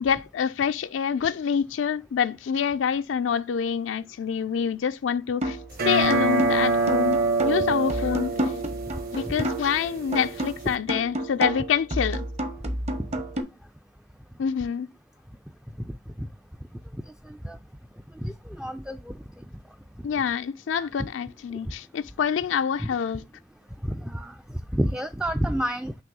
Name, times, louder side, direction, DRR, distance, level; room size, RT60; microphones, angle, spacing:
voice 1, 0.0-5.6 5.8-8.3 9.1-12.2 14.4-14.9 20.0-23.2, left 7 dB, 80° left, 0.4 m, -26 dB
sound 1, 5.4-5.7 6.1-9.8 10.1-13.4, right 1 dB, 35° right, 0.8 m, -30 dB
sound 2, 5.7-10.8, right 3 dB, 55° right, 1.2 m, -26 dB
voice 2, 18.2-19.1 22.8-22.9 23.8-24.3 24.7-25.9, equal, 5° right, 0.3 m, -29 dB
5.9 x 3.1 x 5.2 m
head